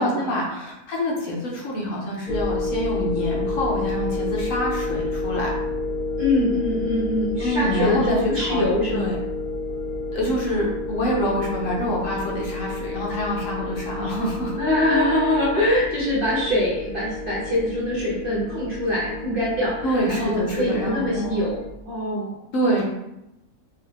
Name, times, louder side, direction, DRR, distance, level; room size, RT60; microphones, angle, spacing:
voice 1, 0.0-5.5 7.4-8.6 8.9-9.2 10.1-14.6 19.8-21.4 22.5-22.8, equal, 65° left, -2 dB, 1.0 m, -26 dB
sound 1, 2.3-21.7, left 2 dB, 80° left, 0.4 m, -30 dB
voice 2, 6.2-9.1 14.6-22.4, left 1 dB, 40° right, -6 dB, 1.0 m, -24 dB
3.6 x 2.5 x 2.9 m, 0.89 s
omnidirectional pair, 1.6 m